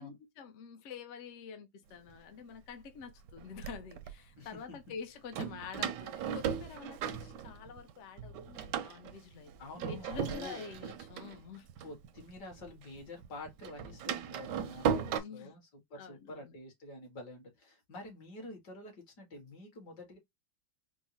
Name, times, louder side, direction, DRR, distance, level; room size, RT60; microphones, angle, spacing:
voice 1, 0.0-11.7 15.0-15.6 15.9-16.5, left 6 dB, 75° left, 0.6 m, -47 dB
Door, 2.2-2.3 3.0-4.1 5.3-7.9 8.2-12.7 13.0-15.2, right 8 dB, 75° right, 1.1 m, -37 dB
voice 2, 9.6-10.6 11.8-20.2, left 2 dB, 60° left, 2.0 m, -48 dB
4.5 x 2.1 x 2.7 m
omnidirectional pair, 2.2 m